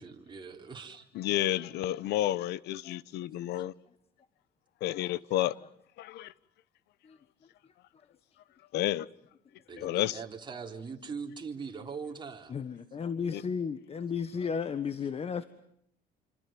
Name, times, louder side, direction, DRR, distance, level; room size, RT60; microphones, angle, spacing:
voice 1, 0.0-1.1 9.7-12.5, right 5 dB, 25° right, 3.9 m, -41 dB
voice 2, 1.1-3.7 4.8-5.5 6.0-6.3 8.7-9.1 9.8-10.2 13.3-13.4, left 13 dB, 80° left, 1.0 m, -30 dB
voice 3, 12.5-15.4, left 6 dB, 35° left, 1.3 m, -33 dB
27.5 x 26.0 x 7.6 m
cardioid pair, 110°, 17 cm